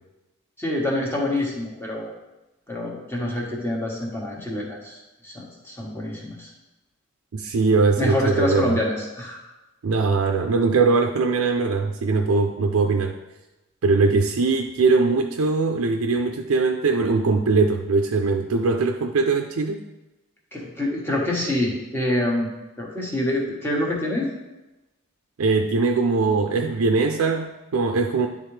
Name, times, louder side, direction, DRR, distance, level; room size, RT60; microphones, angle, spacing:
voice 1, 0.6-2.1 2.7-5.0 5.2-6.5 8.0-9.4 20.5-22.5 22.8-24.3, left 1 dB, 10° left, -3 dB, 1.2 m, -26 dB
voice 2, 7.3-8.7 9.8-13.2 13.8-19.8 25.4-28.3, right 4 dB, 75° right, 4 dB, 0.4 m, -21 dB
10.5 x 3.5 x 3.3 m, 1.0 s
head